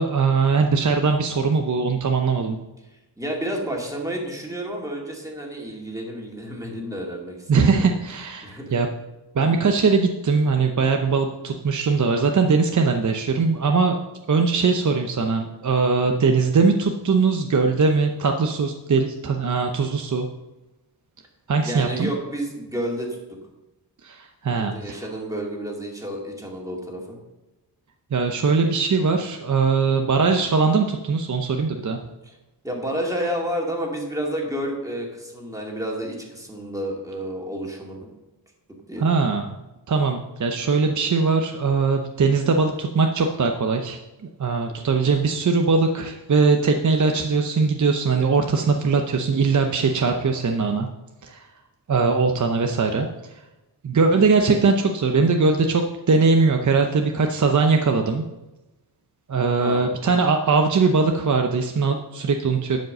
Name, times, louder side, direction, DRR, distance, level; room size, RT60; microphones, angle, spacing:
voice 1, 0.0-2.6 7.5-8.9 9.3-14.0 14.3-20.3 21.5-22.1 24.0-25.0 28.1-32.0 39.0-39.6 39.9-44.0 44.4-50.9 51.2-51.5 51.9-53.4 53.8-58.2 59.3-62.8, right 4 dB, 45° right, 4 dB, 0.7 m, -21 dB
voice 2, 3.2-7.9 8.4-8.7 21.6-23.2 24.5-27.2 32.3-32.4 32.6-38.1 38.9-39.1 59.6-59.9, right 1 dB, 10° right, -2 dB, 2.3 m, -30 dB
12.0 x 5.2 x 6.7 m, 1.0 s
wide cardioid pair, 130°, 41 cm